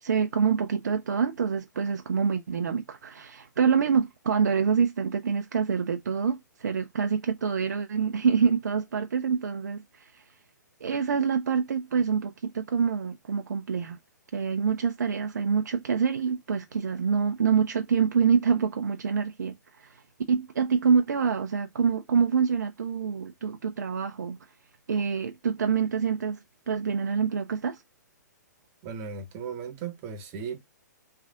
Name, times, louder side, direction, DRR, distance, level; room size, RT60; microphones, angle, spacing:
voice 1, 0.0-10.2 10.8-14.0 14.3-20.0 20.3-24.4 24.9-26.4 26.7-27.8, right 6 dB, 70° right, 0.5 m, -26 dB
voice 2, 28.8-30.6, right 6 dB, 35° right, 0.9 m, -36 dB
3.3 x 2.4 x 3.7 m
figure-of-eight pair, 120°, 10 cm